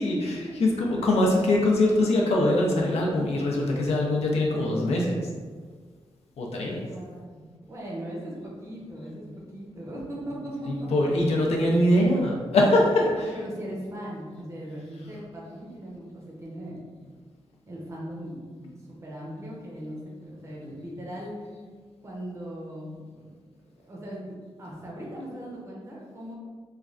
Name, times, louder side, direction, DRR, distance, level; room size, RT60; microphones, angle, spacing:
voice 1, 0.0-5.3 6.4-6.9 10.7-13.0, left 1 dB, 80° left, -1 dB, 0.5 m, -23 dB
voice 2, 6.7-9.2 9.5-10.9 13.0-16.8 17.7-18.4 19.0-21.5 22.0-23.2 23.9-26.3, right 1 dB, 30° right, -4 dB, 0.6 m, -39 dB
3.1 x 2.3 x 2.4 m, 1.5 s
wide cardioid pair, 175°, 10 cm